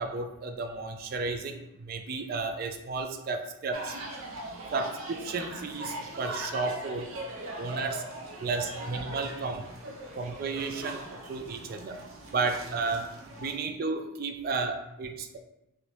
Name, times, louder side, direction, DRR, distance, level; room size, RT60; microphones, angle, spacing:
voice 1, 0.0-4.0 4.7-7.1 7.6-8.0 8.4-9.6 10.1-12.0 12.2-13.1 13.4-15.4, right 4 dB, 45° right, 6 dB, 0.3 m, -33 dB
sound 1, 3.7-13.5, right 1 dB, 85° right, 0.6 m, -40 dB
3.2 x 2.6 x 2.9 m, 0.89 s
head